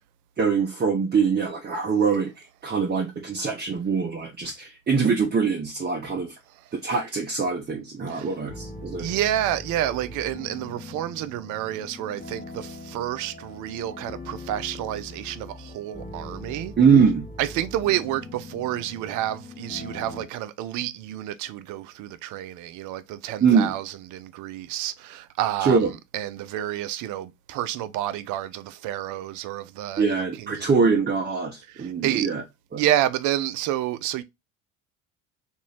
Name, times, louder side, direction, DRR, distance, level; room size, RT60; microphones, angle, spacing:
voice 1, 0.4-2.3 2.6-6.3 6.7-9.1 16.8-17.2 23.4-23.7 25.6-25.9 30.0-32.4 32.7-32.8, right 5 dB, 25° right, 0.9 m, -23 dB
sound 1, 8.5-20.3, left 2 dB, 20° left, 1.2 m, -41 dB
voice 2, 9.0-16.7 17.4-25.8 26.1-30.7 31.7-32.3 32.7-34.2, right 12 dB, 50° right, 0.5 m, -29 dB
3.0 x 2.6 x 3.8 m
figure-of-eight pair, 60°, 39 cm